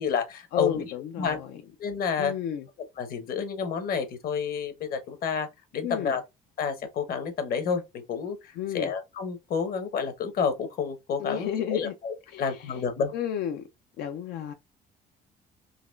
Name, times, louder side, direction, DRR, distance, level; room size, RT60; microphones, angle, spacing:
voice 1, 0.0-0.9 1.2-1.4 1.8-2.3 3.0-5.5 5.7-6.2 6.6-7.8 8.1-13.1, left 6 dB, 60° left, 1.1 m, -29 dB
voice 2, 0.5-1.6 2.2-2.7 5.8-6.2 8.6-8.9 11.2-11.9 12.3-12.8 13.1-13.6 14.0-14.5, left 9 dB, 85° left, 0.5 m, -32 dB
4.0 x 3.1 x 2.4 m
cardioid pair, 110°, 17 cm